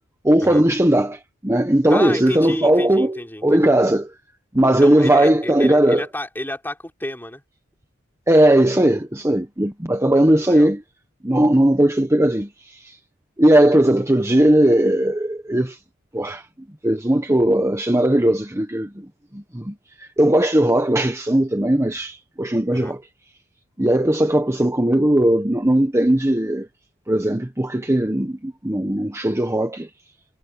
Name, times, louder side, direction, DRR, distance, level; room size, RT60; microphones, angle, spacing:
voice 1, 0.2-4.1 4.5-6.1 8.3-10.8 11.2-13.0 13.4-15.8 16.1-16.4 16.8-19.0 19.3-23.0 23.8-26.7 27.1-29.9, right 1 dB, 15° right, 1.2 m, -18 dB
voice 2, 1.9-3.7 4.8-7.4 10.1-10.7 22.7-22.9, left 1 dB, 10° left, 3.5 m, -31 dB
head